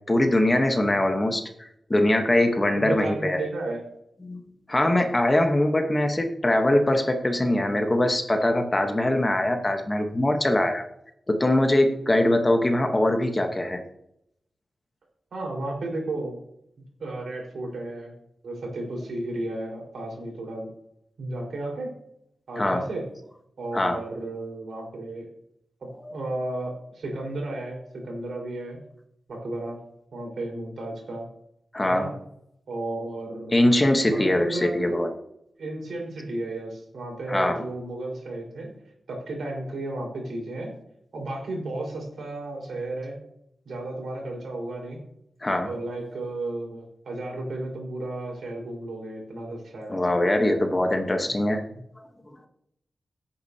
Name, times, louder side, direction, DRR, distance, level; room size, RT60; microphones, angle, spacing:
voice 1, 0.1-3.5 4.2-4.4 4.7-10.8 11.3-13.8 22.6-22.9 23.7-24.0 26.0-26.1 31.7-32.1 33.5-35.1 37.3-37.6 45.4-45.7 49.9-51.6, left 1 dB, 20° left, 5 dB, 1.1 m, -22 dB
voice 2, 2.8-3.8 12.1-12.4 15.3-16.4 16.8-18.1 18.4-20.7 21.2-21.9 22.5-23.1 23.6-25.3 25.8-28.8 29.3-29.8 30.1-31.3 31.8-32.1 32.7-33.6 34.0-35.0 35.6-38.7 39.1-40.7 41.1-43.2 43.6-45.0 45.6-50.0 51.7-51.8, right 2 dB, 80° right, -1 dB, 4.5 m, -33 dB
17.5 x 8.7 x 2.8 m, 0.77 s
wide cardioid pair, 160°, 0 cm